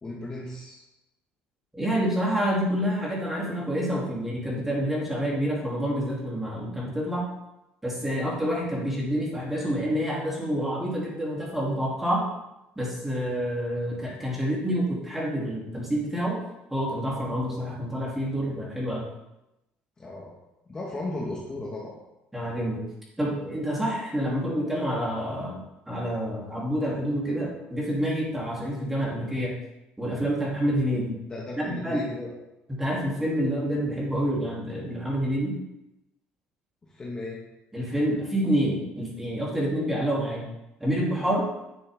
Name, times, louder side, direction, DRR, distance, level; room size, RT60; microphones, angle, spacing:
voice 1, 0.0-0.8 20.0-20.3 20.7-21.9 31.3-32.3 36.8-37.4, left 2 dB, 20° left, -4 dB, 1.6 m, -35 dB
voice 2, 1.7-7.2 7.8-12.2 12.8-16.3 16.7-19.0 22.3-22.8 23.2-29.5 30.0-31.1 31.6-32.1 32.7-35.5 37.7-40.4 40.8-41.4, equal, 5° right, -5 dB, 3.0 m, -28 dB
10.5 x 6.9 x 3.6 m, 0.94 s
cardioid pair, 140°, 4 cm